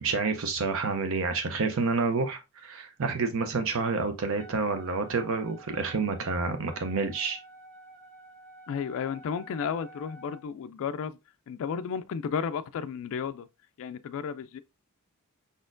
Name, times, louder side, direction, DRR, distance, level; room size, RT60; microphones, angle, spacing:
voice 1, 0.0-7.4, right 4 dB, 65° right, 0.6 m, -29 dB
Wind instrument woodwind instrument, 4.4-10.4, right 2 dB, 10° left, 1.1 m, -51 dB
voice 2, 8.7-11.2 11.5-13.5 13.8-14.6, left 6 dB, 65° left, 0.3 m, -33 dB
5.0 x 4.2 x 2.5 m
head